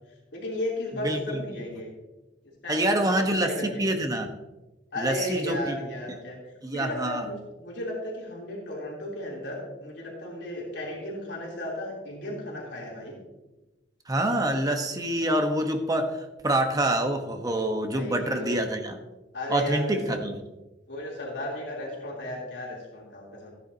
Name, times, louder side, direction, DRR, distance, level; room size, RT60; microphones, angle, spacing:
voice 1, 0.3-1.9 2.6-4.0 4.9-6.4 6.7-13.2 17.9-18.6 19.3-20.2 20.9-23.5, left 1 dB, 75° left, -4 dB, 3.3 m, -35 dB
voice 2, 1.0-1.4 2.7-4.3 5.0-5.8 6.6-7.2 14.1-16.1 16.4-19.0 19.5-20.4, right 1 dB, 20° right, 4 dB, 1.0 m, -26 dB
15.0 x 10.0 x 2.8 m, 1.1 s
head